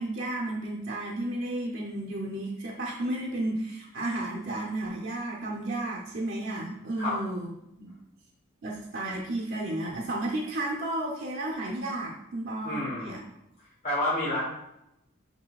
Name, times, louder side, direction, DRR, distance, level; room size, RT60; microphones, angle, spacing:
voice 1, 0.0-7.5 7.8-7.9 8.6-13.2, right 1 dB, 65° right, -3 dB, 0.6 m, -33 dB
voice 2, 12.6-13.2 13.8-14.5, left 1 dB, 40° left, -8 dB, 1.0 m, -29 dB
7.1 x 2.7 x 2.3 m, 0.82 s
head